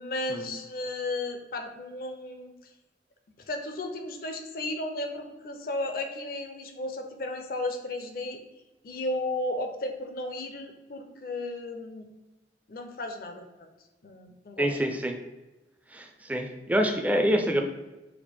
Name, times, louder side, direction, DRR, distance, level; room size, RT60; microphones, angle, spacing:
voice 1, 0.0-2.5 3.5-8.4 8.8-12.1 12.7-13.7 14.0-14.7, left 2 dB, 55° left, 5 dB, 0.5 m, -34 dB
voice 2, 14.6-15.2 15.9-17.6, equal, 10° right, 3 dB, 0.4 m, -26 dB
4.3 x 2.5 x 4.2 m, 1.1 s
head